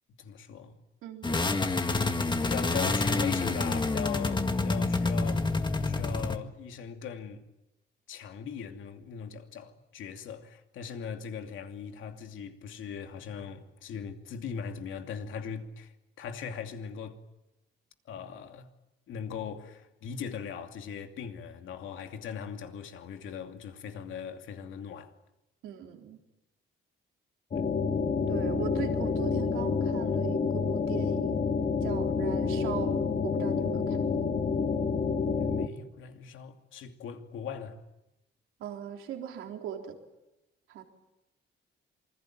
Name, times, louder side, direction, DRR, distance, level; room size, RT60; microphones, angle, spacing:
voice 1, 0.2-0.8 2.2-5.5 5.8-7.4 8.1-15.9 16.2-17.2 18.1-18.7 19.1-25.1 27.5-27.6 35.4-37.8, left 7 dB, 80° left, 2.7 m, -40 dB
voice 2, 1.0-1.5 25.6-26.2 28.3-31.6 31.8-33.0 33.2-34.1 38.6-40.0 40.7-40.8, right 9 dB, 90° right, 3.7 m, -39 dB
sound 1, 1.2-6.4, left 3 dB, 25° left, 1.8 m, -28 dB
sound 2, 27.5-35.7, left 5 dB, 45° left, 2.2 m, -28 dB
27.5 x 21.5 x 9.0 m
cardioid pair, 90°, 20 cm